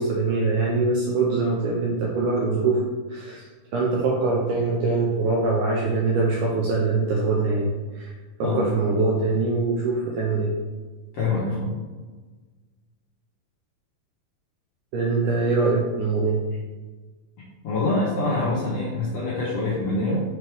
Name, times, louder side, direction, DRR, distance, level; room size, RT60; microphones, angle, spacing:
voice 1, 0.0-2.8 3.1-3.5 3.7-8.1 8.4-10.6 14.9-16.4, right 3 dB, 80° right, -2 dB, 1.8 m, -23 dB
voice 2, 11.1-11.7 17.6-20.2, left 2 dB, 70° left, -7 dB, 1.5 m, -25 dB
6.2 x 4.5 x 3.4 m, 1.3 s
omnidirectional pair, 4.3 m